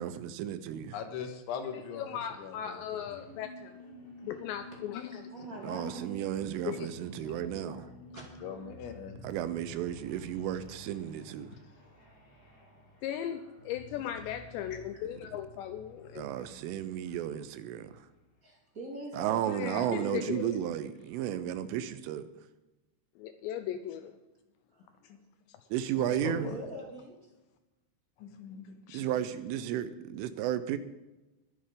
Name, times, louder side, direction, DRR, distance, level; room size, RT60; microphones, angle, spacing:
voice 1, 0.0-1.0 5.6-7.9 9.2-11.5 16.2-18.1 19.1-22.2 25.7-26.5 28.9-30.8, right 11 dB, 80° right, 3.2 m, -33 dB
voice 2, 0.9-3.1 8.4-9.3 23.6-23.8 25.0-25.2 26.0-26.6 28.2-29.1, left 6 dB, 70° left, 3.7 m, -41 dB
voice 3, 1.7-3.8 4.2-5.3 6.7-6.9 13.0-16.3 19.5-20.6 23.2-24.1, left 10 dB, 85° left, 2.5 m, -37 dB
sound 1, 3.1-18.2, left 1 dB, 20° left, 3.5 m, -52 dB
voice 4, 5.3-6.9 7.2-8.2 14.9-15.0 18.4-20.3 24.7-24.8 26.4-27.1, right 2 dB, 35° right, 1.3 m, -43 dB
22.0 x 7.8 x 5.2 m
omnidirectional pair, 5.8 m